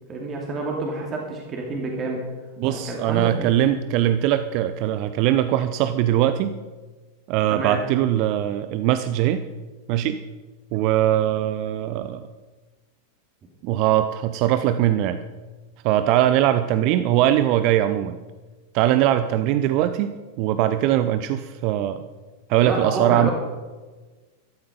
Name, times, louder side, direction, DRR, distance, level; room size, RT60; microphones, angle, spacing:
voice 1, 0.1-2.2 2.6-3.7 7.5-7.8 22.6-23.3, right 2 dB, 25° right, -1 dB, 2.6 m, -29 dB
voice 2, 2.6-6.5 7.3-9.4 9.9-10.2 10.7-12.3 13.6-15.2 15.8-18.2 18.7-20.1 20.4-22.0 22.5-23.3, right 12 dB, 45° right, 11 dB, 0.6 m, -21 dB
14.0 x 12.5 x 5.2 m, 1.3 s
figure-of-eight pair, 90°, 0 cm